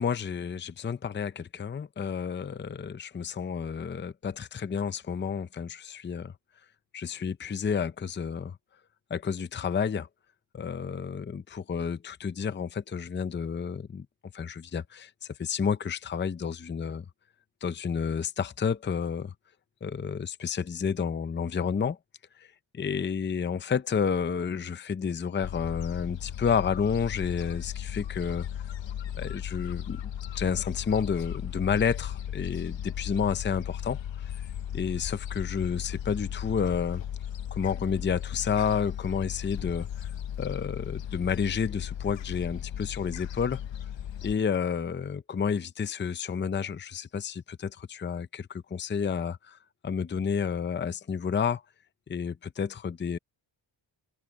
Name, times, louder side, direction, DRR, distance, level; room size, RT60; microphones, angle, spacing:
voice 1, 0.0-6.3 6.9-8.6 9.1-10.1 10.5-14.1 14.3-15.1 15.4-17.0 17.6-19.3 19.8-22.0 22.4-22.5 22.7-28.5 29.2-34.3 34.7-37.0 37.5-40.1 40.4-43.6 44.2-49.6 49.8-51.6 52.1-53.2, left 6 dB, 25° left, 0.6 m, -30 dB
Gull seagull, 25.4-44.4, left 10 dB, 65° left, 1.2 m, -36 dB
open air
wide cardioid pair, 135°, 48 cm